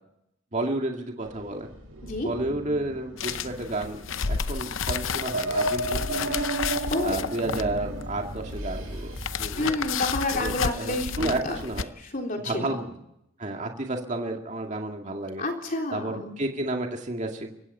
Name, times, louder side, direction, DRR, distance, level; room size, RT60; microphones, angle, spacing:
voice 1, 0.5-1.7 2.2-6.3 7.0-9.8 10.3-11.9 12.4-13.0 13.4-15.4 15.9-17.5, right 2 dB, 35° right, 2 dB, 2.2 m, -31 dB
sound 1, 1.2-9.4, right 2 dB, 90° right, 7.5 m, -34 dB
sound 2, 3.2-11.8, left 6 dB, 70° left, 0.7 m, -32 dB
voice 2, 6.9-7.2 9.6-11.6 12.1-12.8 15.4-16.4, left 2 dB, 40° left, 2 dB, 3.5 m, -29 dB
29.5 x 16.5 x 5.6 m, 0.80 s
head